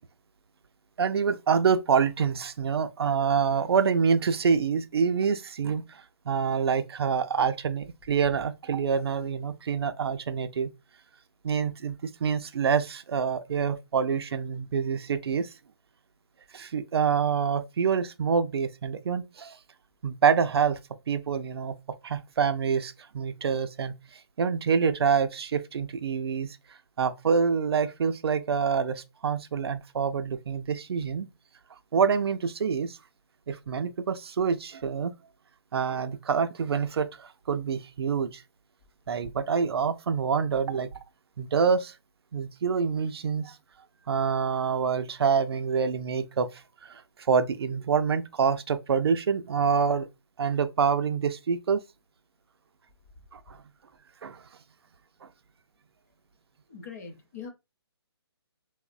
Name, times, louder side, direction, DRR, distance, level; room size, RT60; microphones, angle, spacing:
voice 1, 1.0-10.7 11.4-15.5 16.5-19.6 20.0-20.8 21.1-21.7 22.0-23.9 24.4-26.6 27.0-31.3 31.9-33.0 33.5-35.1 35.7-38.4 39.1-40.9 41.4-41.9 42.3-43.6 44.1-47.0 47.3-50.1 50.4-51.8 53.3-53.6 54.2-54.4, right 6 dB, 65° right, 0.4 m, -26 dB
voice 2, 56.7-57.5, left 6 dB, 35° left, 0.6 m, -41 dB
3.0 x 2.0 x 2.4 m
hypercardioid pair, 160°, 14 cm